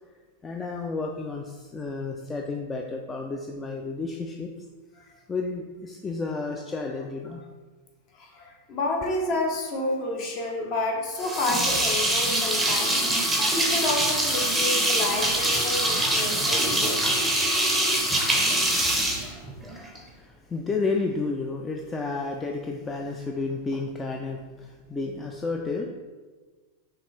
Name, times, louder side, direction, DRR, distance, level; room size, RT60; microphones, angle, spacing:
voice 1, 0.4-4.5 5.3-7.4 19.9-25.9, left 3 dB, 15° left, 1 dB, 0.3 m, -31 dB
voice 2, 8.1-13.1 13.5-17.0, left 2 dB, 40° left, 1 dB, 0.9 m, -30 dB
sound 1, 11.2-20.0, right 1 dB, ahead, 0.7 m, -24 dB
5.7 x 2.4 x 3.1 m, 1.3 s
figure-of-eight pair, 90°, 0 cm